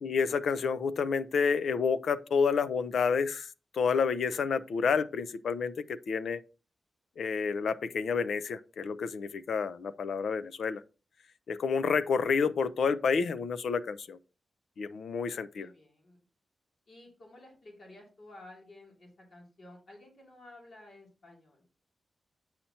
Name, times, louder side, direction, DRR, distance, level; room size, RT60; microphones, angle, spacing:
voice 1, 0.0-3.5 3.7-6.4 7.2-10.8 11.5-14.2 14.8-15.7, left 5 dB, 75° left, 0.5 m, -29 dB
voice 2, 15.6-16.2 16.9-21.6, left 1 dB, 55° left, 2.6 m, -53 dB
8.8 x 5.7 x 2.8 m
wide cardioid pair, 155°, 0 cm